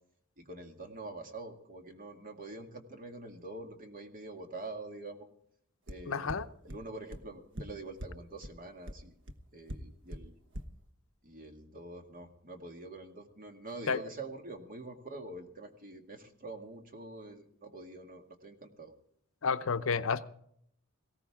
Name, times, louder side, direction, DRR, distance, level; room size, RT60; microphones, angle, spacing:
voice 1, 0.4-5.3 5.9-6.3 6.6-9.1 9.5-10.3 11.2-18.9, right 2 dB, 40° right, 2.1 m, -45 dB
sound 1, 5.9-6.0 6.3-6.4 6.7-6.8 7.1-7.2 7.6-7.7 8.0-8.1 8.4-8.5 8.9-9.0 9.3-9.4 9.7-9.8 10.1-10.2 10.5-10.6, equal, 60° right, 1.2 m, -39 dB
voice 2, 6.1-6.5 13.9-14.0 19.4-20.3, left 5 dB, 65° left, 0.7 m, -30 dB
19.0 x 17.0 x 3.6 m
head